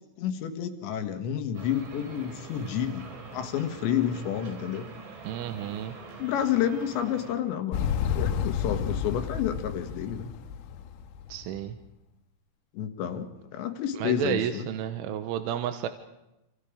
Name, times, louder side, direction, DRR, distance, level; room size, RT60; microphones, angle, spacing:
voice 1, 0.2-3.1 3.3-4.9 6.2-7.9 8.2-10.3 12.7-14.7, left 10 dB, 70° left, 7 dB, 3.5 m, -30 dB
sound 1, 1.5-7.3, right 3 dB, 60° right, 6.4 m, -44 dB
voice 2, 5.2-6.0 11.3-11.7 14.0-15.9, right 10 dB, 80° right, 8 dB, 3.5 m, -31 dB
Motorcycle, 7.7-11.6, left 8 dB, 85° left, 3.7 m, -31 dB
28.0 x 27.5 x 5.1 m, 0.93 s
omnidirectional pair, 5.7 m